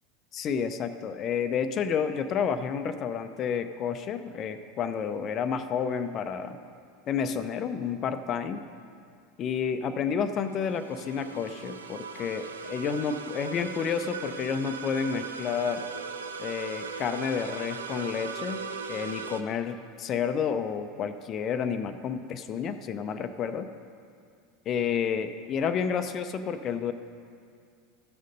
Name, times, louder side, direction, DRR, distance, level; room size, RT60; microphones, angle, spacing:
voice 1, 0.3-6.6 7.1-8.6 9.4-15.8 16.4-23.7 24.7-26.9, left 7 dB, 40° left, 9 dB, 0.6 m, -30 dB
sound 1, 10.3-19.4, right 5 dB, 80° right, 0.6 m, -39 dB
14.0 x 6.5 x 5.3 m, 2.3 s
figure-of-eight pair, 80°, 0 cm